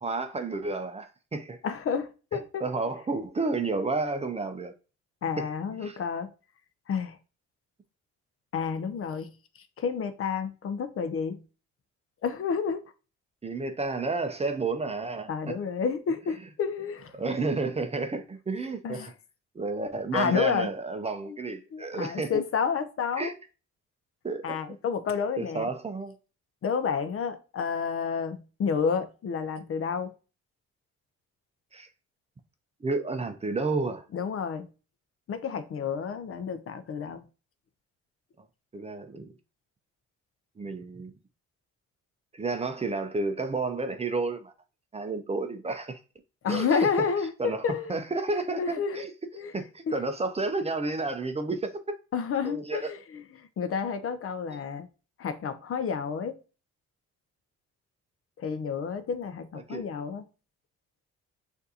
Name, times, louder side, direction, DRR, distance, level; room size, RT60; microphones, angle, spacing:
voice 1, 0.0-1.6 2.6-4.7 5.4-5.5 5.8-6.0 13.4-15.6 16.4-16.5 17.2-19.1 19.5-22.3 23.2-23.3 24.2-24.6 25.4-26.1 31.7-31.9 32.8-34.0 38.7-39.3 40.6-41.1 42.3-44.5 44.9-46.0 46.5-46.9 47.4-49.1 49.5-51.7 52.4-52.9 59.7-59.8, right 3 dB, 20° right, 0.5 m, -31 dB
voice 2, 1.6-2.6 5.2-6.3 6.9-7.2 8.5-9.3 9.8-11.4 12.2-12.8 15.3-17.1 18.8-19.1 20.1-20.7 21.7-23.3 24.4-25.7 26.6-30.1 34.1-34.7 35.3-37.2 46.4-47.9 48.6-49.0 49.4-49.5 49.9-50.0 52.1-54.9 55.2-56.4 58.4-60.2, left 6 dB, 50° left, 0.6 m, -30 dB
6.4 x 2.6 x 2.7 m
cardioid pair, 90°, 30 cm